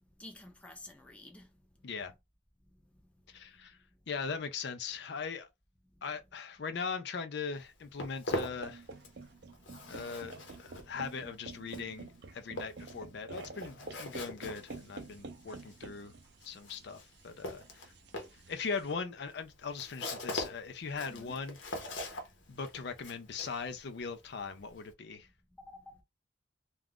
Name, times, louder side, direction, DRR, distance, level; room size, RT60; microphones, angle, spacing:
voice 1, 0.2-1.5 21.1-21.3 25.6-26.0, left 1 dB, 5° left, 0.6 m, -50 dB
voice 2, 3.3-3.8 4.1-5.5 6.0-8.8 9.9-16.1 16.4-17.9 18.5-21.6 22.5-25.3, left 5 dB, 60° left, 0.5 m, -40 dB
Walk footsteps, 7.5-9.3 9.5-24.9, left 1 dB, 75° left, 0.9 m, -43 dB
sound 1, 8.5-18.9, right 3 dB, 60° right, 0.5 m, -49 dB
2.4 x 2.3 x 3.4 m
head